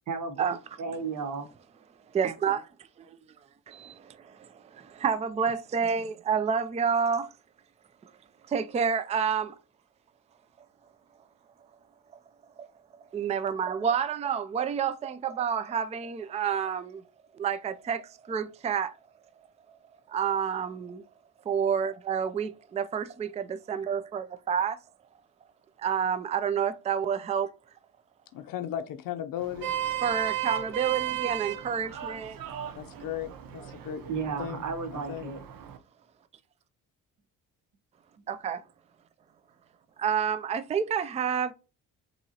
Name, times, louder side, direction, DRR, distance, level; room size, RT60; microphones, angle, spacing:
voice 1, 0.1-1.5 34.1-35.4, right 5 dB, 60° right, 1.0 m, -34 dB
voice 2, 2.1-2.7 3.7-7.3 8.0-8.1 8.5-9.6 12.6-12.7 13.1-17.0 17.3-19.0 19.7-19.8 20.1-21.0 21.5-24.8 25.8-27.5 30.0-32.4 38.3-38.6 40.0-41.5, right 7 dB, 20° right, 0.3 m, -29 dB
voice 3, 28.3-29.7 32.8-34.1 34.4-34.6 34.9-35.3, left 10 dB, 70° left, 0.6 m, -36 dB
Vehicle horn car horn honking, 29.4-35.8, right 12 dB, 75° right, 0.7 m, -35 dB
5.3 x 2.9 x 2.7 m
cardioid pair, 95°, 35 cm